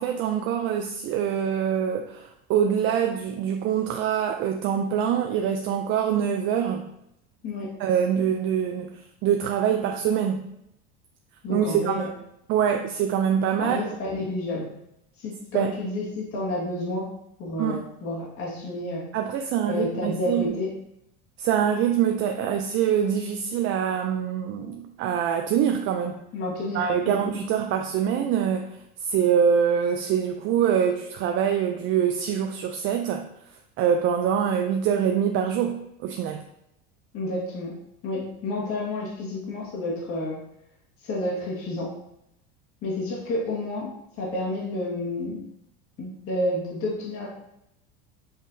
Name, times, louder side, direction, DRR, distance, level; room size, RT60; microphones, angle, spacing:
voice 1, 0.0-6.9 7.8-10.5 11.5-12.1 12.5-13.8 15.5-15.7 17.6-17.8 19.1-20.5 21.4-26.2 26.7-28.8 29.1-33.3 33.8-36.4, right 8 dB, 45° right, 4 dB, 0.4 m, -24 dB
voice 2, 11.4-12.1 13.6-14.7 15.2-17.1 17.4-19.0 19.7-20.7 26.3-27.3 37.1-37.7 38.0-40.4 41.0-41.9 42.8-43.9 44.2-45.4 46.0-47.3, left 1 dB, 50° left, -3 dB, 1.7 m, -30 dB
5.5 x 3.2 x 2.7 m, 0.81 s
supercardioid pair, 115°, 29 cm